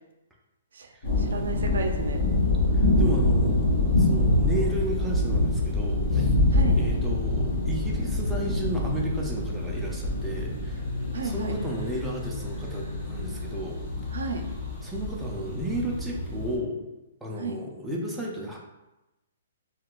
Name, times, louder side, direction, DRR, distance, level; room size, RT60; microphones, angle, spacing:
sound 1, 1.0-16.6, left 1 dB, 45° left, 1.4 m, -26 dB
voice 1, 1.2-2.2 6.5-6.8 11.1-11.5 14.1-14.4 17.4-17.6, right 4 dB, 80° right, 4 dB, 0.5 m, -32 dB
sound 2, 1.4-9.2, left 2 dB, 75° left, 0.5 m, -34 dB
voice 2, 2.7-3.6 4.0-6.3 6.7-10.9 11.2-13.8 14.8-16.8 17.2-18.6, right 1 dB, 5° right, -3 dB, 0.4 m, -33 dB
3.7 x 2.2 x 2.4 m, 0.98 s
hypercardioid pair, 165°, 0 cm